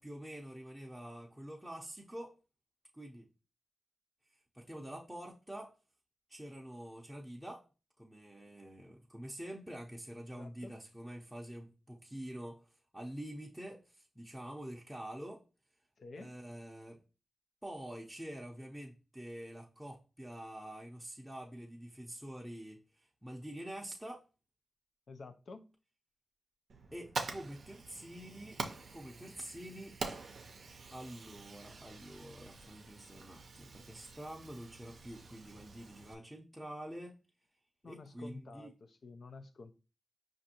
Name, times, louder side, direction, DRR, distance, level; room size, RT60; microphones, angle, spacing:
voice 1, 0.0-2.3 2.9-3.3 4.5-5.7 6.3-7.6 8.0-12.7 12.9-15.4 16.1-17.0 17.6-24.2 26.9-28.6 28.9-30.0 30.9-37.2 37.8-38.7, right 1 dB, 5° right, 0.6 m, -47 dB
voice 2, 10.3-10.7 16.0-16.3 25.1-25.7 37.8-39.7, left 3 dB, 65° left, 0.4 m, -50 dB
Fire, 26.7-36.1, right 4 dB, 70° right, 0.5 m, -46 dB
5.1 x 2.5 x 2.8 m
cardioid pair, 55°, 0 cm